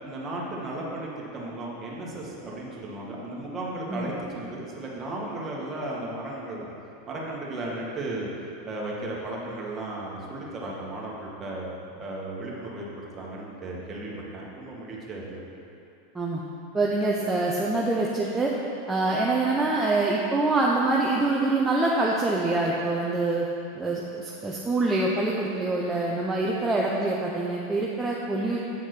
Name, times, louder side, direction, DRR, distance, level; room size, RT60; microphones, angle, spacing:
voice 1, 0.0-6.7 7.1-8.3 8.6-15.4, right 2 dB, 30° right, -4 dB, 1.9 m, -35 dB
voice 2, 16.7-18.5 18.9-23.5 23.7-28.6, right 2 dB, 15° right, -4 dB, 0.8 m, -25 dB
8.5 x 4.4 x 6.1 m, 2.8 s
hypercardioid pair, 95°, 0 cm